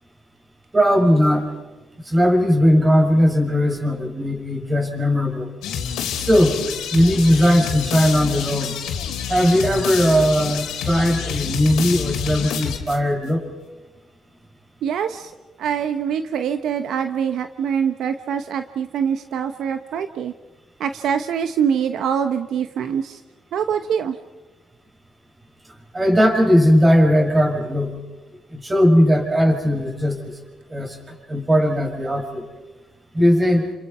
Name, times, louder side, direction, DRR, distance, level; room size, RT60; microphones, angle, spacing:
voice 1, 0.7-1.5 2.0-5.5 6.2-6.6 6.9-8.8 9.3-13.5 25.9-28.0 28.5-30.4 30.7-31.0 31.3-32.4 33.1-33.7, equal, 20° right, 3 dB, 6.3 m, -18 dB
sound 1, 5.6-13.3, left 7 dB, 90° left, 3.3 m, -28 dB
voice 2, 14.8-15.3 15.6-20.3 20.8-23.2 23.5-24.2, right 7 dB, 75° right, 8 dB, 1.1 m, -24 dB
29.5 x 27.0 x 5.6 m, 1.2 s
cardioid pair, 90°, 0 cm